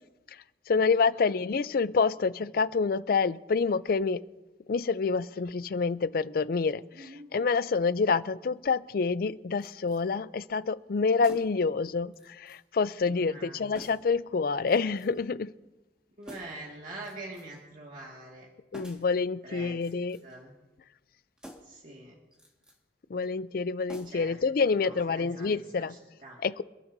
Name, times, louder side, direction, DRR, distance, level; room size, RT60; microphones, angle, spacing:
voice 1, 0.7-4.2 4.7-15.5 18.7-20.2 23.1-26.0 26.4-26.6, left 4 dB, 55° left, 16 dB, 0.4 m, -27 dB
voice 2, 6.9-7.3 13.1-13.7 16.2-18.5 19.4-19.8 20.2-20.5 21.6-22.1 24.1-26.4, right 2 dB, 50° right, -2 dB, 2.0 m, -45 dB
sound 1, 9.6-10.0 11.2-11.7 12.1-12.6 12.9-13.0 13.7-14.2 14.7-15.2 16.2-16.7 17.0-17.6 18.7-19.1 19.7-20.4 21.4-21.8 22.3-22.8 23.9-24.4 24.7-24.8, equal, 5° right, 1.8 m, -49 dB
28.0 x 11.5 x 2.7 m, 1.1 s
head